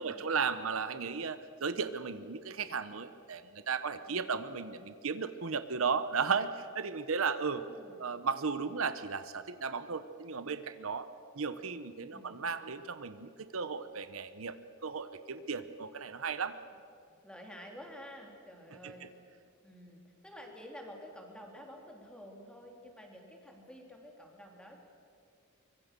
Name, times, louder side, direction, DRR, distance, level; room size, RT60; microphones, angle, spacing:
voice 1, 0.0-7.6 8.0-11.1 11.3-16.6 18.8-19.1, right 5 dB, 70° right, 12 dB, 0.9 m, -35 dB
voice 2, 4.0-4.4 7.5-8.0 12.1-12.4 17.2-19.1 19.6-24.8, equal, 5° left, 1 dB, 3.5 m, -50 dB
24.5 x 23.0 x 6.8 m, 2.4 s
head